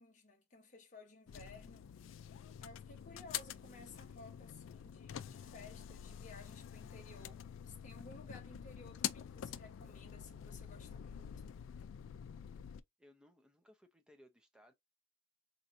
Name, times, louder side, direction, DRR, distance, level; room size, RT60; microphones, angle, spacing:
voice 1, 0.0-1.9 2.6-11.3, left 3 dB, 40° left, 0.9 m, -56 dB
sound 1, 1.3-12.8, left 9 dB, 75° left, 0.3 m, -47 dB
voice 2, 13.0-14.7, equal, 5° right, 0.6 m, -64 dB
4.3 x 2.7 x 2.5 m
head